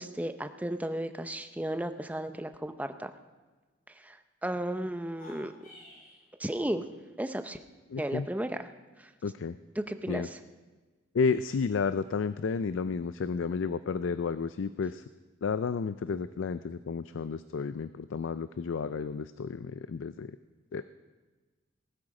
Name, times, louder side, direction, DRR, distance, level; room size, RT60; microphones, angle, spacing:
voice 1, 0.0-3.1 4.0-4.2 4.4-5.5 6.4-6.8 7.2-7.6 8.0-8.7 9.0-9.1 9.8-10.4, right 1 dB, 10° right, 8 dB, 0.6 m, -34 dB
sound 1, 5.0-6.2, left 2 dB, 45° left, 6.0 m, -52 dB
voice 2, 7.9-8.3 9.2-9.6 10.1-10.3 11.1-15.0 15.4-20.4 20.7-20.8, left 5 dB, 85° left, 13 dB, 0.4 m, -31 dB
19.0 x 13.0 x 4.9 m, 1.3 s
head